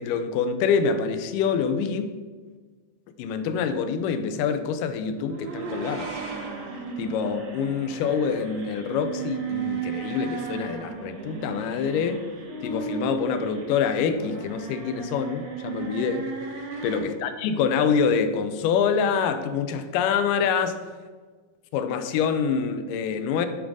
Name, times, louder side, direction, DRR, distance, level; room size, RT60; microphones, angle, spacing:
voice 1, 0.0-2.1 3.2-6.1 7.0-12.2 12.6-16.3 16.8-20.8 21.7-23.5, left 6 dB, 80° left, 9 dB, 2.1 m, -26 dB
sound 1, 5.2-17.0, right 5 dB, 90° right, 1.0 m, -35 dB
10.5 x 3.6 x 5.2 m, 1.4 s
omnidirectional pair, 3.9 m